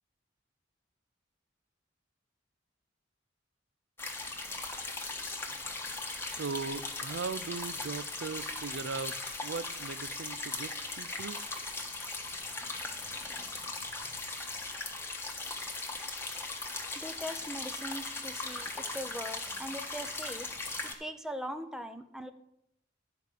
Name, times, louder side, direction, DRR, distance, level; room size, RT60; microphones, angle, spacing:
sound 1, 4.0-20.9, left 3 dB, 15° left, 1.2 m, -38 dB
voice 1, 6.2-11.4, right 4 dB, 70° right, 0.4 m, -39 dB
voice 2, 16.9-20.5 20.8-22.3, equal, 5° right, 0.6 m, -41 dB
12.0 x 4.9 x 6.7 m
head